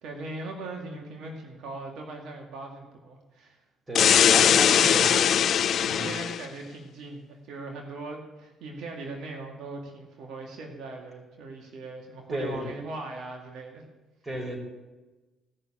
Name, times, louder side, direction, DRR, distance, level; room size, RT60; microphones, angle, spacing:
voice 1, 0.0-3.6 4.7-5.3 5.7-13.8, right 3 dB, 70° right, 1 dB, 2.3 m, -39 dB
sound 1, 3.9-6.4, left 9 dB, 60° left, 0.4 m, -20 dB
voice 2, 3.9-5.2 5.8-6.1 12.3-12.6 14.2-14.6, right 1 dB, 20° right, 2 dB, 5.4 m, -33 dB
sound 2, 5.9-6.2, left 3 dB, 35° left, 2.2 m, -44 dB
17.5 x 6.6 x 8.8 m, 1.1 s
supercardioid pair, 80°, 0 cm